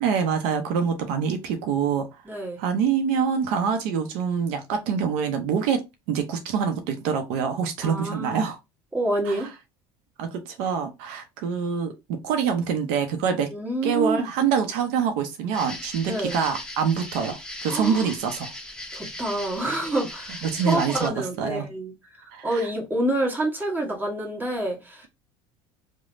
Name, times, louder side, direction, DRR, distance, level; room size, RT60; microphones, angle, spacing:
voice 1, 0.0-2.1 2.6-5.8 6.1-8.6 9.2-9.4 10.2-13.5 13.8-18.5 20.4-21.7 22.3-22.7, right 6 dB, 70° right, 0.5 m, -25 dB
voice 2, 2.3-2.6 7.8-8.4 8.9-9.5 13.5-14.2 16.0-16.4 17.7-18.1 18.9-21.9 22.2-25.1, right 1 dB, 15° right, 1.2 m, -28 dB
sound 1, 15.5-21.1, left 1 dB, 5° left, 0.7 m, -38 dB
3.1 x 2.0 x 2.5 m
supercardioid pair, 90°, 13 cm